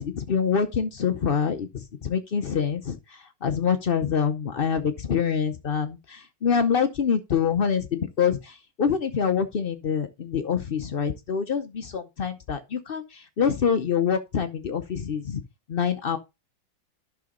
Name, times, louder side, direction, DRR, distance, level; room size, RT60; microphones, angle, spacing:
voice 1, 0.0-15.4 15.7-16.2, left 7 dB, 85° left, 0.5 m, -26 dB
11.5 x 6.2 x 3.7 m
omnidirectional pair, 2.1 m